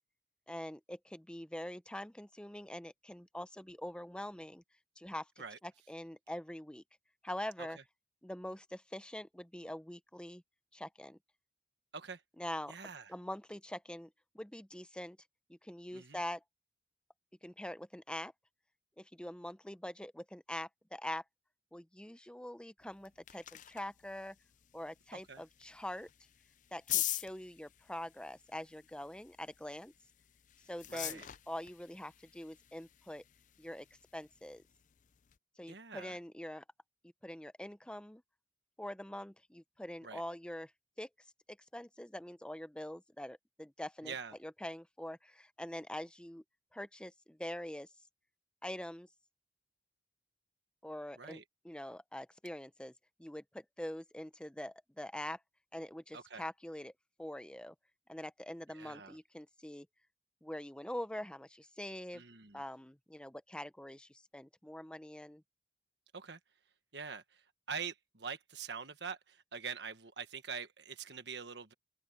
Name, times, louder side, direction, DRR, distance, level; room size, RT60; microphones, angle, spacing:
voice 1, 0.5-4.6 5.0-5.3 5.6-6.8 7.2-7.8 8.2-10.4 10.7-11.2 12.4-12.8 13.1-14.1 14.3-15.2 15.5-16.4 17.4-18.3 19.0-21.2 21.7-24.4 24.7-26.1 26.7-29.9 30.7-31.2 31.5-33.2 33.6-33.9 34.1-34.6 35.6-36.6 37.2-38.2 38.8-40.7 41.0-41.1 41.5-44.1 44.4-46.4 46.7-47.9 48.6-49.1 50.8-52.9 53.2-55.4 55.7-56.9 57.2-57.7 58.1-59.9 60.4-62.2 62.5-65.4, left 1 dB, 5° left, 0.7 m, -44 dB
voice 2, 12.7-13.1 15.9-16.2 25.3-25.4 30.9-31.3 35.7-36.2 40.0-40.2 44.0-44.3 51.2-51.4 56.1-56.4 58.7-59.2 62.1-62.6 66.1-66.4 66.9-71.7, right 6 dB, 70° right, 1.4 m, -44 dB
sound 1, 22.8-35.4, left 14 dB, 45° left, 0.5 m, -45 dB
open air
head